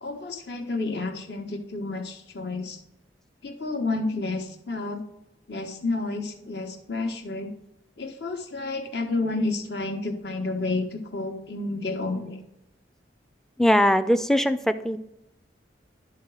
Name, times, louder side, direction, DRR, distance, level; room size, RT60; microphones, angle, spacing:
voice 1, 0.0-2.8 3.4-5.0 5.5-7.5 8.0-12.4, left 3 dB, 65° left, 4 dB, 1.2 m, -30 dB
voice 2, 13.6-15.0, equal, ahead, 10 dB, 0.4 m, -21 dB
11.5 x 3.9 x 4.8 m, 0.86 s
head